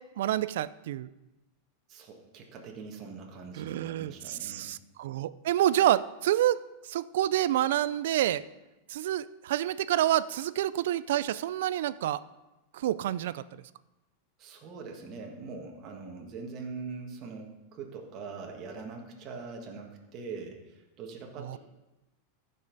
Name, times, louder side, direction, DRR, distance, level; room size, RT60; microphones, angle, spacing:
voice 1, 0.2-1.1 3.6-6.6 6.9-8.4 8.9-12.2 12.7-13.4 21.4-21.6, right 12 dB, 75° right, 17 dB, 0.3 m, -28 dB
voice 2, 1.9-4.7 14.4-21.6, right 4 dB, 35° right, 1 dB, 1.5 m, -42 dB
14.5 x 5.5 x 4.0 m, 1.0 s
supercardioid pair, 145°, 0 cm